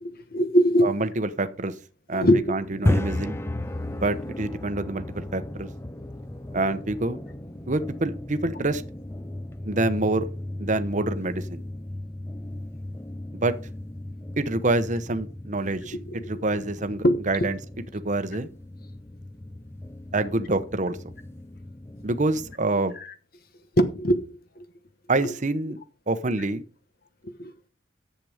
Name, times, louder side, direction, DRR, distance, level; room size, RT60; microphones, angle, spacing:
voice 1, 0.0-0.9 2.1-2.4 16.1-16.3 17.0-17.2 23.0-23.1 23.8-24.3 24.6-24.7 27.4-27.5, equal, 55° left, 1.1 m, -21 dB
voice 2, 0.8-1.7 2.1-3.4 3.9-5.7 6.5-7.2 7.7-8.8 9.6-10.3 10.6-11.6 13.3-13.5 14.4-15.9 16.3-17.6 17.9-18.5 20.1-21.0 22.0-23.0 25.1-25.8 26.1-26.6, right 2 dB, 40° right, 1.0 m, -26 dB
sound 1, 2.6-22.5, left 1 dB, 15° left, 0.5 m, -34 dB
11.0 x 7.8 x 5.0 m
head